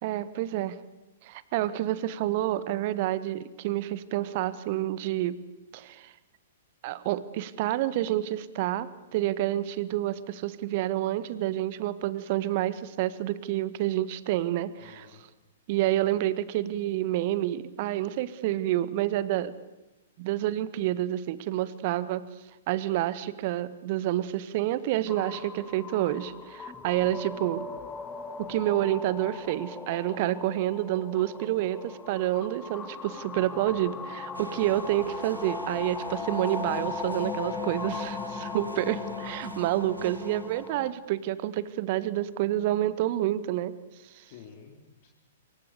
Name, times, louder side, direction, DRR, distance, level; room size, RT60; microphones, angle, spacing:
voice 1, 0.0-0.8 1.2-5.4 5.7-6.1 6.8-15.1 15.7-19.5 20.2-22.3 22.7-27.6 28.4-43.7 44.1-44.2, right 14 dB, 45° right, 16 dB, 1.5 m, -28 dB
voice 2, 14.8-15.2 33.4-33.8 44.2-45.1, left 7 dB, 45° left, 2 dB, 3.7 m, -51 dB
sound 1, 25.1-40.9, left 5 dB, 15° left, 2.2 m, -38 dB
sound 2, 34.3-40.9, right 2 dB, 80° right, 2.0 m, -45 dB
27.0 x 24.0 x 6.8 m, 1.1 s
figure-of-eight pair, 110°, 0 cm